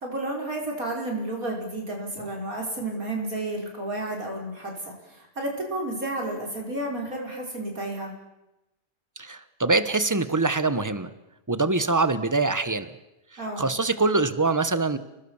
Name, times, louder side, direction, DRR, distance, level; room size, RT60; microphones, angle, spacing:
voice 1, 0.0-8.1 13.4-13.7, right 1 dB, 55° right, 0 dB, 5.5 m, -31 dB
voice 2, 9.2-11.1 11.5-12.9 13.6-15.0, right 3 dB, 15° right, 12 dB, 1.0 m, -24 dB
30.0 x 19.5 x 7.2 m, 0.95 s
omnidirectional pair, 1.7 m